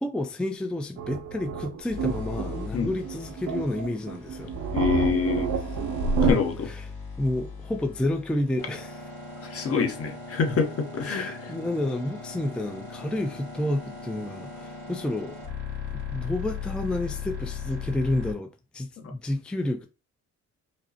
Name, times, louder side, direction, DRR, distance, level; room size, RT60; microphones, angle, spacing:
voice 1, 0.0-4.5 5.5-5.7 6.6-6.8 7.2-9.0 11.1-15.4 16.1-19.9, left 1 dB, 5° left, 0.4 m, -30 dB
sound 1, 1.0-6.3, right 5 dB, 70° right, 0.7 m, -29 dB
sound 2, 1.9-18.3, left 5 dB, 80° left, 2.0 m, -39 dB
voice 2, 4.7-5.5 6.2-6.7 9.5-11.5, left 5 dB, 50° left, 0.9 m, -26 dB
5.1 x 2.0 x 2.8 m
cardioid pair, 90°, 30 cm